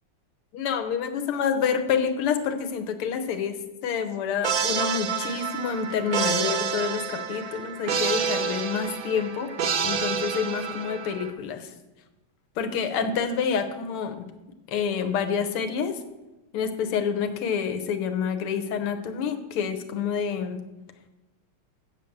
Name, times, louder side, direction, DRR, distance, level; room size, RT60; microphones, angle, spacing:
voice 1, 0.5-9.5 9.8-11.7 12.6-14.3 14.7-16.0 16.5-20.6, left 7 dB, 85° left, 7 dB, 1.8 m, -28 dB
sound 1, 4.4-11.3, right 6 dB, 55° right, 1.0 m, -28 dB
7.7 x 7.4 x 7.2 m, 1.0 s
omnidirectional pair, 2.4 m